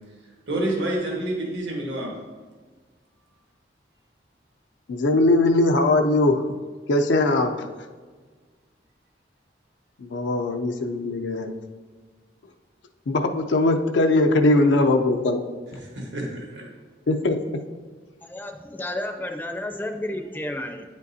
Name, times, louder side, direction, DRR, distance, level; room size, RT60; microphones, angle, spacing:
voice 1, 0.5-2.1 15.8-16.7, right 1 dB, 85° right, -2 dB, 1.4 m, -28 dB
voice 2, 4.9-6.5 6.9-7.5 10.0-11.5 13.1-15.4 17.1-17.4, left 2 dB, 80° left, 5 dB, 0.5 m, -20 dB
voice 3, 18.2-20.8, left 1 dB, 10° left, 4 dB, 0.4 m, -31 dB
9.2 x 5.2 x 2.7 m, 1.4 s
head